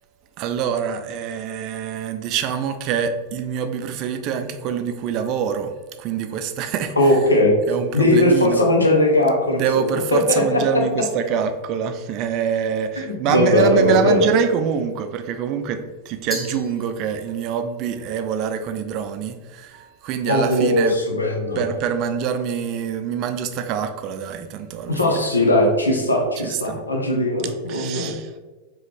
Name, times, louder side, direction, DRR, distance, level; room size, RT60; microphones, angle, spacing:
voice 1, 0.4-5.7 6.0-6.9 7.7-8.6 9.5-21.0 21.6-25.2 26.4-26.8 27.7-28.4, right 7 dB, 40° right, 8 dB, 0.4 m, -25 dB
voice 2, 7.0-7.5 7.9-10.2 10.5-10.6 13.0-14.3 20.3-21.6 24.9-28.1, left 1 dB, 80° left, 2 dB, 0.8 m, -19 dB
Glass, 16.3-17.5, left 1 dB, 10° left, 1.1 m, -36 dB
4.9 x 3.1 x 3.3 m, 1.2 s
figure-of-eight pair, 90°, 0 cm